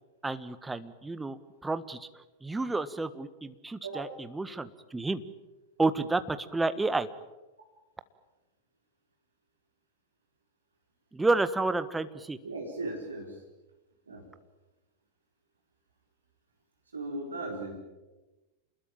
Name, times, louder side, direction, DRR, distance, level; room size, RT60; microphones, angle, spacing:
voice 1, 0.2-2.1 2.4-4.1 4.3-5.2 5.8-7.1 11.1-12.4, right 3 dB, 10° right, 12 dB, 1.5 m, -30 dB
voice 2, 12.4-13.4 14.1-14.3 16.9-17.7, right 2 dB, 75° right, 1 dB, 4.4 m, -37 dB
28.5 x 21.0 x 8.9 m, 1.1 s
figure-of-eight pair, 90°, 0 cm